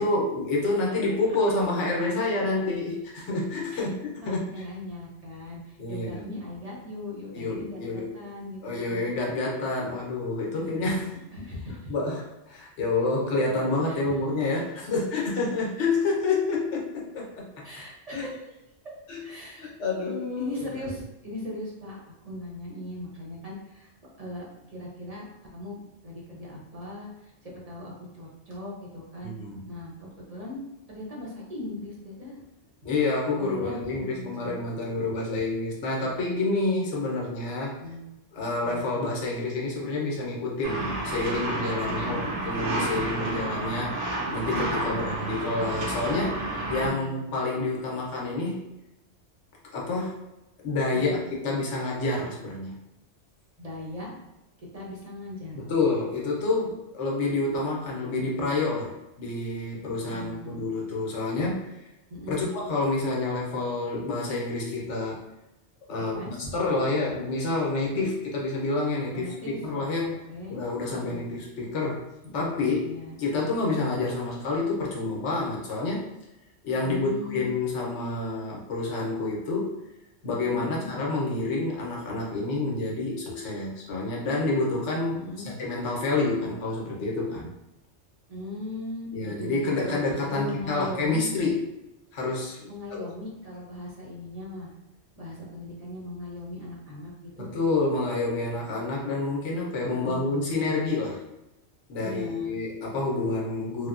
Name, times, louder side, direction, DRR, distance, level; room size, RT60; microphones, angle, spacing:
voice 1, 0.0-4.4 5.8-6.3 7.3-8.1 8.6-11.1 11.9-17.6 18.1-18.2 19.1-19.2 19.6-20.5 29.2-29.6 32.8-37.8 38.3-48.6 49.7-50.2 50.6-52.8 55.5-58.9 59.2-61.7 62.3-65.2 65.9-66.1 66.5-70.2 70.5-72.1 72.3-76.0 76.6-79.8 80.2-85.2 85.4-87.5 89.1-91.6 92.1-92.7 97.4-101.2 101.9-103.9, left 3 dB, 75° left, -3 dB, 1.1 m, -28 dB
voice 2, 4.2-9.1 10.5-11.9 13.9-14.1 17.6-18.6 19.2-19.8 20.4-22.0 22.2-23.9 24.2-25.2 25.5-29.4 29.7-30.6 30.9-32.4 33.4-34.6 37.8-38.1 38.6-38.9 41.9-42.4 44.7-45.2 46.7-47.2 50.9-51.2 53.6-54.1 54.6-55.6 60.0-60.6 62.1-62.5 66.0-66.5 67.8-68.1 69.1-70.6 70.9-71.3 72.2-73.2 76.8-77.5 80.4-80.9 85.1-85.5 88.3-90.0 90.3-91.3 92.7-94.7 95.2-97.5 99.9-100.6 102.0-102.6, left 2 dB, 40° right, -4 dB, 0.7 m, -39 dB
sound 1, 40.6-46.9, right 1 dB, 80° right, 1.1 m, -30 dB
3.4 x 2.1 x 2.4 m, 0.95 s
omnidirectional pair, 1.2 m